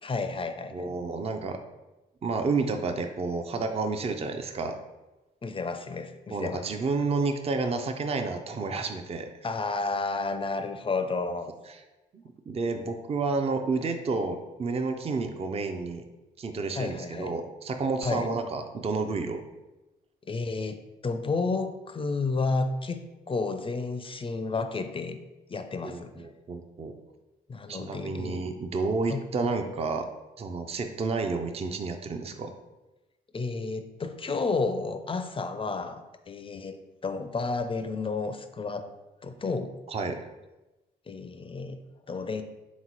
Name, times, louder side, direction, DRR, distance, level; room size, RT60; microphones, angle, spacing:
voice 1, 0.0-0.9 5.4-6.6 9.4-11.5 16.7-17.4 18.0-18.3 20.3-25.2 25.5-26.3 27.5-28.4 29.1-29.3 33.3-36.8 37.0-38.9 39.2-39.7 41.1-41.8 42.1-42.4, left 3 dB, 25° left, 9 dB, 0.4 m, -31 dB
voice 2, 0.7-1.6 2.2-4.8 6.3-9.3 12.1-16.0 16.4-19.4 25.8-26.9 27.7-30.1 30.4-32.5 39.9-40.2, right 4 dB, 30° right, 5 dB, 0.5 m, -30 dB
3.6 x 3.0 x 4.0 m, 1.1 s
hypercardioid pair, 50°, 21 cm